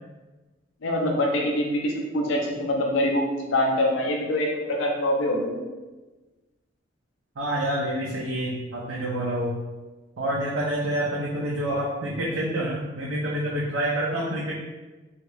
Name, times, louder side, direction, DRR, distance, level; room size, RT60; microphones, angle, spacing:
voice 1, 0.8-5.6, left 1 dB, 75° left, 0 dB, 0.6 m, -24 dB
voice 2, 7.4-9.6 10.2-14.5, right 1 dB, 75° right, -4 dB, 0.5 m, -27 dB
2.8 x 2.4 x 3.2 m, 1.2 s
head